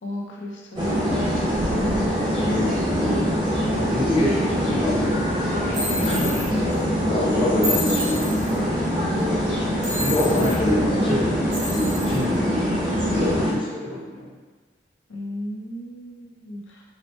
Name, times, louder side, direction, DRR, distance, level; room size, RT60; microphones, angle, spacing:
voice 1, 0.0-1.4 15.1-16.8, left 1 dB, 75° left, -1 dB, 0.5 m, -35 dB
sound 1, 0.8-13.5, equal, 25° right, 0.6 m, -24 dB
voice 2, 1.9-3.2 3.6-5.2 5.6-8.3 9.1-9.3 9.8-14.3, left 1 dB, 30° left, -8 dB, 0.6 m, -26 dB
sound 2, 5.7-6.4 7.6-8.5 9.8-10.5 11.5-12.2, left 1 dB, 80° right, 0.9 m, -29 dB
2.7 x 2.0 x 3.1 m, 1.4 s
head